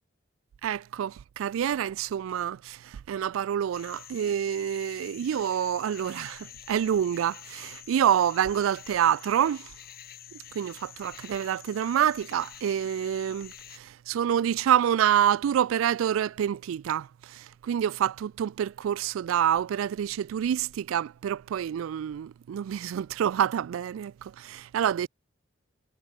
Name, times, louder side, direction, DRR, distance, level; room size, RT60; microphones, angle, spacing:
voice 1, 0.6-9.7 10.5-25.1, right 9 dB, 85° right, 0.3 m, -27 dB
sound 1, 3.7-13.8, left 12 dB, 50° left, 2.8 m, -48 dB
head